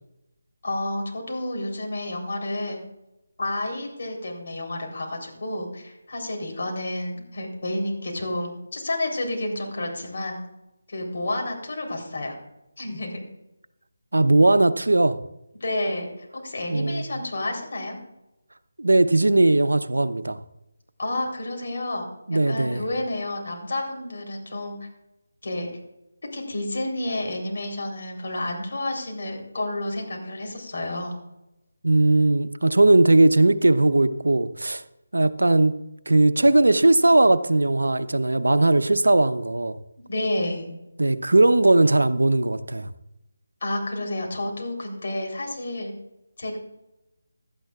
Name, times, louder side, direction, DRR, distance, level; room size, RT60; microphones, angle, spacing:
voice 1, 0.6-2.8 3.4-10.4 10.9-12.4 12.8-13.2 15.6-18.0 21.0-24.9 25.4-25.7 26.3-31.2 40.1-40.7 43.6-45.9 46.4-46.6, left 1 dB, 55° left, 3.6 m, -30 dB
voice 2, 14.1-15.2 16.7-17.2 18.8-20.4 22.3-22.8 31.8-34.8 35.1-35.7 36.1-39.8 41.0-42.9, right 2 dB, 80° right, 0.8 m, -19 dB
16.5 x 11.5 x 2.4 m
figure-of-eight pair, 160°, 0 cm